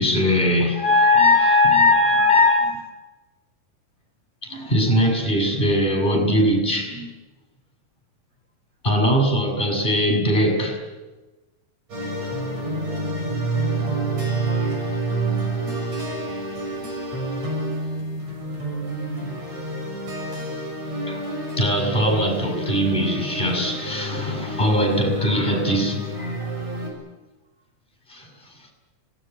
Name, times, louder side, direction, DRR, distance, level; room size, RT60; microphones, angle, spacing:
voice 1, 0.0-2.8 4.4-7.1 8.8-10.8 21.1-21.2 21.6-26.5 28.1-28.3, left 1 dB, 15° left, 7.0 m, -20 dB
sound 1, 11.9-26.9, right 2 dB, 60° right, 7.8 m, -28 dB
25.0 x 19.0 x 8.4 m
omnidirectional pair, 3.4 m